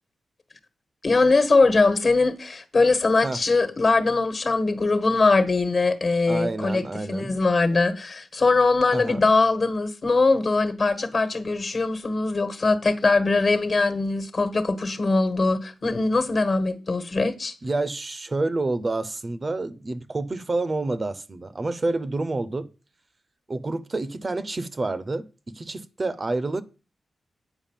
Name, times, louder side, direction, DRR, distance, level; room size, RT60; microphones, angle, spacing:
voice 1, 1.0-17.5, left 3 dB, 45° left, 1.4 m, -21 dB
voice 2, 6.3-7.3 8.9-9.3 17.6-22.7 23.5-25.3 25.5-26.6, right 2 dB, 35° right, 0.7 m, -28 dB
9.0 x 4.8 x 7.2 m
cardioid pair, 80°, 0 cm